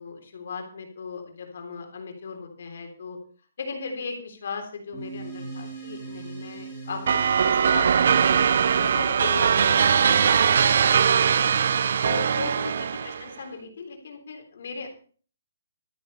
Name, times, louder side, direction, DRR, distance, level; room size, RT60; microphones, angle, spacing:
voice 1, 0.0-3.2 3.6-7.2 7.4-8.4 8.7-10.2 10.4-11.5 12.0-14.9, left 4 dB, 50° left, 4 dB, 3.4 m, -37 dB
sound 1, 4.9-9.7, right 4 dB, 10° right, 5.7 m, -40 dB
sound 2, 7.1-13.3, right 7 dB, 45° right, 0.5 m, -21 dB
12.5 x 9.7 x 5.5 m, 0.43 s
hypercardioid pair, 175°, 0 cm